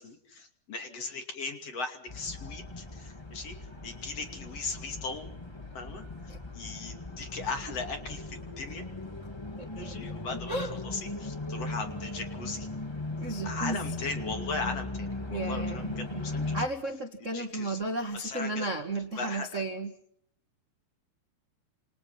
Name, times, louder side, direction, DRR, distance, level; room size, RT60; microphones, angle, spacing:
voice 1, 0.0-3.6 3.8-5.3 5.7-6.0 6.5-8.8 9.8-12.7 13.4-16.6 17.2-17.8 18.1-18.7 19.2-19.6, left 3 dB, 45° left, 5 dB, 3.3 m, -38 dB
sound 1, 2.1-16.7, left 2 dB, 20° left, 0.7 m, -38 dB
voice 2, 9.6-9.9 10.5-10.7 13.2-13.8 15.3-16.2 16.5-19.9, right 2 dB, 45° right, 5 dB, 1.0 m, -34 dB
28.5 x 28.0 x 5.9 m, 0.68 s
omnidirectional pair, 4.6 m